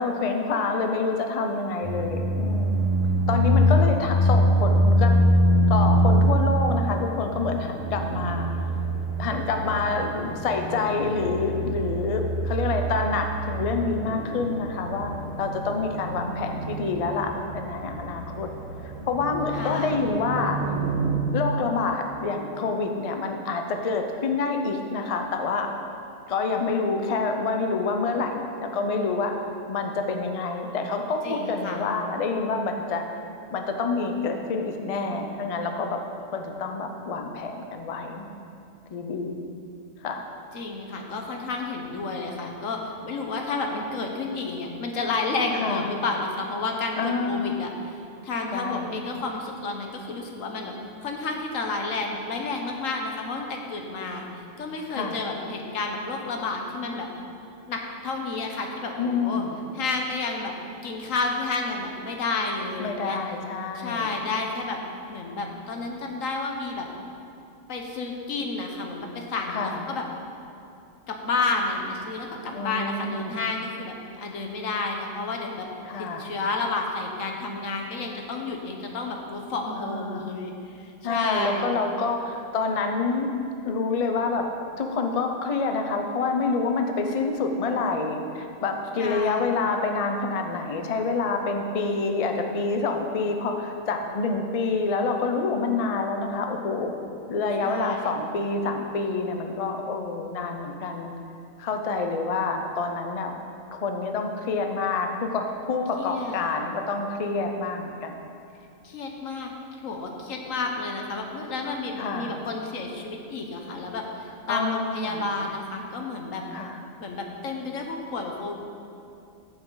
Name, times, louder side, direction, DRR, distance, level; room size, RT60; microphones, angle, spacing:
voice 1, 0.0-2.8 3.3-5.2 5.7-8.5 9.2-15.1 15.4-18.5 18.8-20.6 21.3-25.7 26.3-29.3 29.7-33.0 33.5-36.0 36.3-38.3 38.9-39.5 40.0-40.2 45.5-45.8 47.0-47.6 48.5-48.9 54.9-55.2 59.0-59.5 62.8-64.1 69.5-69.8 72.5-73.3 75.8-76.3 79.8-80.3 81.0-83.3 83.6-84.5 84.8-96.9 97.3-101.1 101.6-103.3 103.7-108.2 112.0-112.3 114.5-115.3 116.5-116.8, left 4 dB, 40° left, 4 dB, 0.5 m, -27 dB
sound 1, 1.8-21.1, equal, 85° right, 2.0 m, -25 dB
voice 2, 19.5-20.0 31.2-31.8 40.5-48.0 48.2-50.7 51.0-54.3 54.6-57.1 57.7-59.4 59.7-60.5 60.8-63.2 63.7-64.8 65.1-66.9 67.7-70.0 71.1-75.7 76.0-81.8 89.0-89.6 97.6-98.1 106.0-106.4 108.8-109.5 109.8-116.4 117.0-118.6, left 3 dB, 80° left, 2 dB, 1.4 m, -31 dB
14.5 x 6.0 x 3.9 m, 2.6 s
omnidirectional pair, 1.3 m